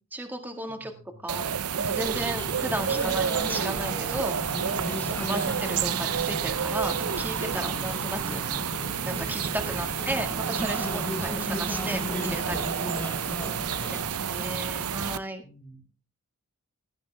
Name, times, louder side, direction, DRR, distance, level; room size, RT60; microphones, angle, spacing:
voice 1, 0.1-0.9 1.2-1.5 1.9-4.4 5.1-8.8 9.0-12.9 13.9-15.4, right 1 dB, 10° right, 4 dB, 1.9 m, -34 dB
voice 2, 0.7-1.3 2.1-2.8 11.1-11.3 13.8-14.9 15.4-15.8, left 1 dB, 40° left, 3 dB, 4.0 m, -47 dB
sound 1, 1.3-15.2, right 7 dB, 80° right, 0.7 m, -30 dB
sound 2, 2.0-14.0, left 1 dB, 10° left, 1.2 m, -36 dB
16.5 x 13.5 x 3.5 m, 0.35 s
head